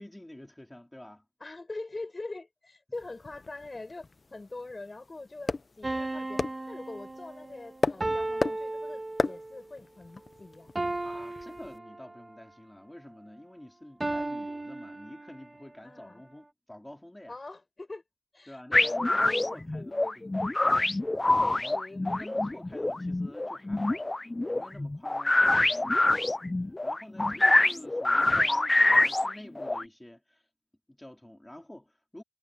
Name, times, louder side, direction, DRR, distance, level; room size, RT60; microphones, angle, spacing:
voice 1, 0.0-1.3 8.0-8.2 11.0-17.3 18.5-20.5 21.3-24.1 24.5-25.4 26.8-30.5 30.9-32.2, left 1 dB, 15° left, 3.8 m, -48 dB
voice 2, 1.4-10.7 15.8-16.2 17.3-18.0 18.3-20.5 21.4-22.0, left 2 dB, 55° left, 5.9 m, -43 dB
sound 1, 2.9-11.8, left 3 dB, 80° left, 0.7 m, -36 dB
sound 2, 5.8-9.6 10.8-12.3 14.0-15.6, right 2 dB, 40° right, 2.3 m, -35 dB
sound 3, 18.7-29.8, left 2 dB, 40° left, 0.5 m, -25 dB
wide cardioid pair, 75°, 0 cm